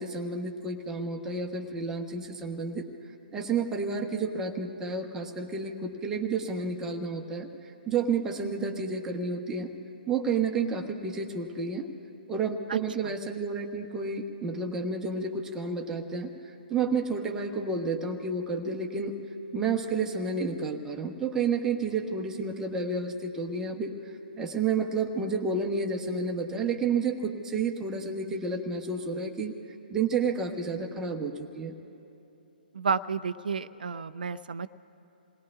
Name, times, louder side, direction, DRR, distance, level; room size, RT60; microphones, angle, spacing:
voice 1, 0.0-9.7 10.1-11.9 12.3-19.1 19.5-29.5 29.9-31.7, right 4 dB, 10° right, 2 dB, 1.1 m, -31 dB
voice 2, 32.7-34.7, right 5 dB, 60° right, 13 dB, 0.5 m, -31 dB
29.0 x 19.5 x 2.4 m, 3.0 s
figure-of-eight pair, 130°, 5 cm